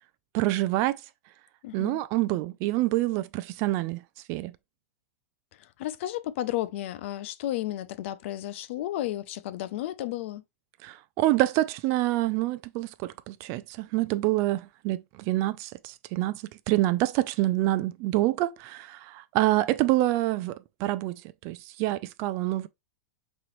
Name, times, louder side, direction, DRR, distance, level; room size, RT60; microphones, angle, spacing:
voice 1, 0.3-1.0 1.7-4.0 4.3-4.5 10.8-22.7, right 16 dB, 35° right, 0.3 m, -27 dB
voice 2, 1.6-2.0 5.6-10.4, left 14 dB, 60° left, 0.4 m, -33 dB
4.9 x 3.0 x 3.1 m
supercardioid pair, 150°, 8 cm